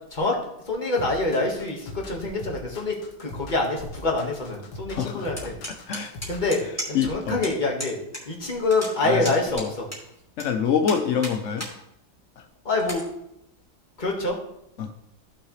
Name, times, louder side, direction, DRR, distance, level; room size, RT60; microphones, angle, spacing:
voice 1, 0.7-2.9 3.2-5.5 6.3-8.0 8.3-9.9 12.7-13.0 14.0-14.4, left 2 dB, 25° left, 0 dB, 1.7 m, -26 dB
sound 1, 1.0-6.6, left 1 dB, 90° left, 1.9 m, -41 dB
voice 2, 4.9-5.3 5.9-6.1 6.6-7.4 9.0-9.3 9.5-9.7 10.4-11.7 12.4-12.5 14.8-14.9, left 7 dB, 75° left, 5 dB, 0.7 m, -26 dB
sound 2, 5.4-7.1 7.4-7.5 7.8-8.2 8.5-10.4 10.8-11.7 12.2-12.3 12.8-13.0, equal, 10° left, 2.7 m, -34 dB
14.0 x 6.6 x 3.2 m, 0.82 s
omnidirectional pair, 2.1 m